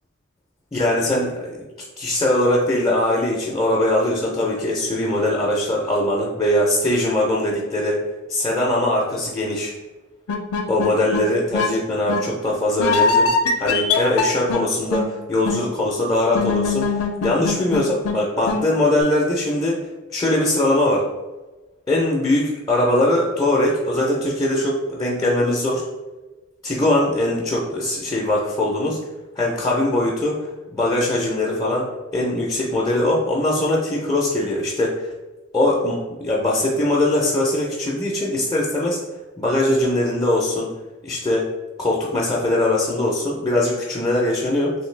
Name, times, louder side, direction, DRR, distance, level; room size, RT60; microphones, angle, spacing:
voice 1, 0.7-1.6 2.0-8.0 8.3-9.7 10.7-13.3 13.6-19.8 20.1-21.0 21.9-25.8 26.6-29.0 29.4-30.4 30.7-35.1 35.5-39.0 39.4-40.7 41.0-41.5 41.8-44.7, left 1 dB, 15° left, -5 dB, 0.4 m, -21 dB
sound 1, 10.3-11.2 11.5-11.7 12.1-12.2 12.8-14.6 14.9-15.1 15.5-15.6 16.3-18.2 18.5-18.6, left 4 dB, 80° left, 0.4 m, -21 dB
3.1 x 2.7 x 3.1 m, 1.1 s
head